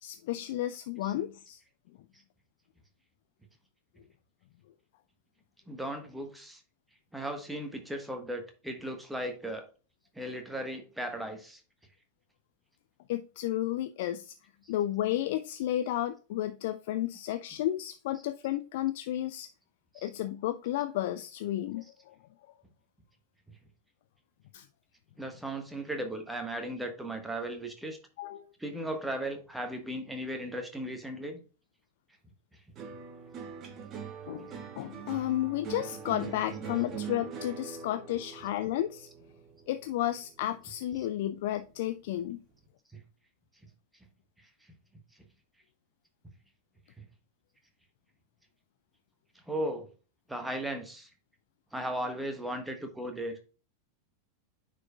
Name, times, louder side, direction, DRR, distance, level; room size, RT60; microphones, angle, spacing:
voice 1, 0.0-1.6 13.1-14.3 14.7-19.5 20.0-22.2 24.5-24.7 28.2-28.5 34.3-39.1 39.7-42.4, left 13 dB, 50° left, 0.4 m, -32 dB
voice 2, 5.7-6.6 7.1-9.6 10.1-11.6 20.0-20.1 25.2-28.0 28.6-31.4 42.9-43.0 49.5-49.9 50.3-51.1 51.7-53.4, right 1 dB, 5° right, 1.4 m, -36 dB
sound 1, 32.8-41.2 41.5-42.2, right 6 dB, 30° right, 1.2 m, -43 dB
9.5 x 4.4 x 2.3 m
figure-of-eight pair, 90°, 0 cm